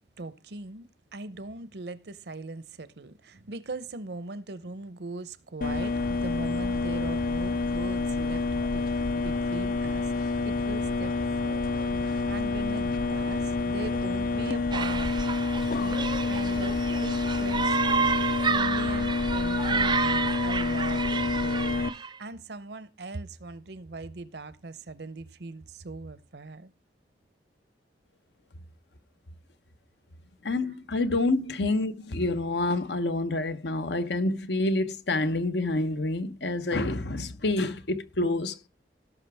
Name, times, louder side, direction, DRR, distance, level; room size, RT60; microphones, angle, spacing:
voice 1, 0.0-15.1 15.8-18.2 18.5-26.7, right 3 dB, 65° right, 0.8 m, -40 dB
sound 1, 5.6-21.9, left 3 dB, 50° left, 0.5 m, -28 dB
sound 2, 14.7-22.2, right 5 dB, 25° right, 0.5 m, -30 dB
voice 2, 30.4-38.7, left 2 dB, 75° left, 0.9 m, -28 dB
17.0 x 5.9 x 3.4 m
head